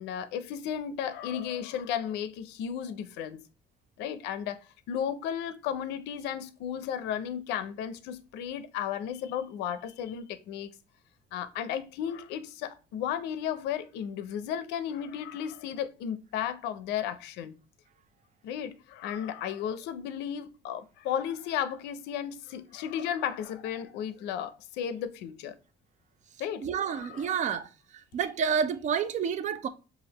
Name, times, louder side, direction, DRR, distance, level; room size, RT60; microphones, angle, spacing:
voice 1, 0.0-3.4 4.0-4.6 4.9-10.7 11.3-17.5 18.4-25.6 26.4-27.5, left 9 dB, 85° left, 0.5 m, -34 dB
voice 2, 26.6-27.7 28.1-29.7, right 7 dB, 45° right, 0.5 m, -29 dB
5.0 x 2.5 x 2.8 m
cardioid pair, 110°, 17 cm